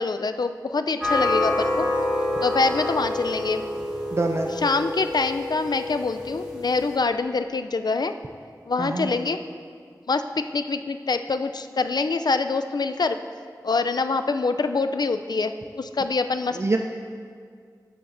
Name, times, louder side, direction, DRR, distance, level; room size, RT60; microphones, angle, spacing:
voice 1, 0.0-1.9 2.4-3.6 4.6-8.1 8.7-9.4 10.1-10.2 10.5-13.2 13.6-16.6, left 4 dB, 70° left, 9 dB, 0.4 m, -25 dB
sound 1, 1.0-7.0, left 2 dB, 10° right, 1.2 m, -27 dB
voice 2, 4.1-4.5 8.8-9.1 16.6-16.8, right 3 dB, 40° right, 3 dB, 0.3 m, -24 dB
11.5 x 6.7 x 2.6 m, 2.1 s
wide cardioid pair, 60°, 7 cm